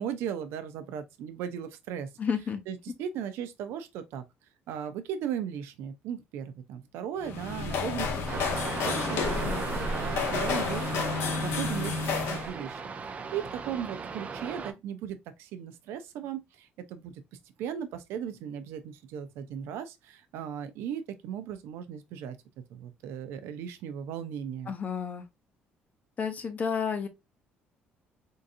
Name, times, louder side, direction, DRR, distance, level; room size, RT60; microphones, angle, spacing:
voice 1, 0.0-2.1 2.7-4.2 4.7-12.8 13.1-17.1 17.6-22.4 22.7-24.7, right 9 dB, 85° right, 0.6 m, -37 dB
voice 2, 2.2-2.6 9.4-9.6 24.7-25.2 26.2-27.1, left 6 dB, 40° left, 0.7 m, -31 dB
sound 1, 7.2-12.5, left 4 dB, 80° left, 0.9 m, -30 dB
sound 2, 8.3-14.7, right 5 dB, 35° right, 0.5 m, -37 dB
3.7 x 2.7 x 2.6 m
cardioid pair, 105°, 4 cm